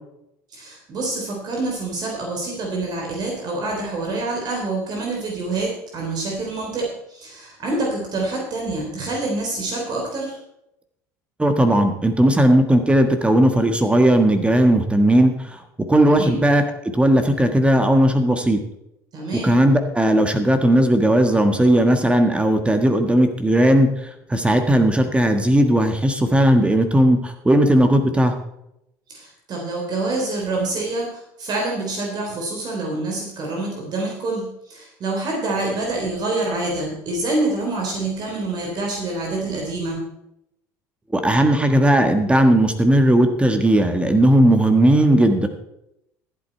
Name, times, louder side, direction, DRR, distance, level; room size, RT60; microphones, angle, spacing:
voice 1, 0.5-10.4 16.1-16.4 19.1-19.6 29.1-40.1, right 2 dB, 45° right, -1 dB, 3.6 m, -26 dB
voice 2, 11.4-15.3 15.9-16.6 16.9-18.6 19.4-28.3 41.1-45.5, right 1 dB, 10° right, 7 dB, 1.4 m, -16 dB
14.0 x 8.3 x 4.5 m, 0.82 s
hypercardioid pair, 75°, 9 cm